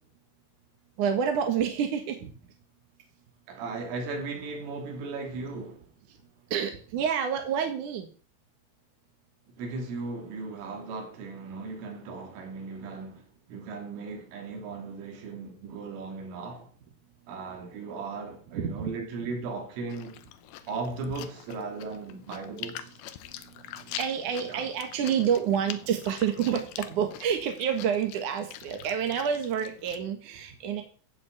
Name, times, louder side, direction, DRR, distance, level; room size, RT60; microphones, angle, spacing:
voice 1, 1.0-2.3 6.5-8.1 18.5-18.9 19.2-19.3 24.0-30.8, right 8 dB, 60° right, 2.2 m, -28 dB
voice 2, 3.5-5.8 9.6-16.7 17.3-20.2 20.7-23.0 24.4-24.7, right 3 dB, 80° right, 5.5 m, -37 dB
Chewing mastication, 19.9-30.0, left 12 dB, 90° left, 2.1 m, -44 dB
15.5 x 6.2 x 8.2 m
omnidirectional pair, 5.7 m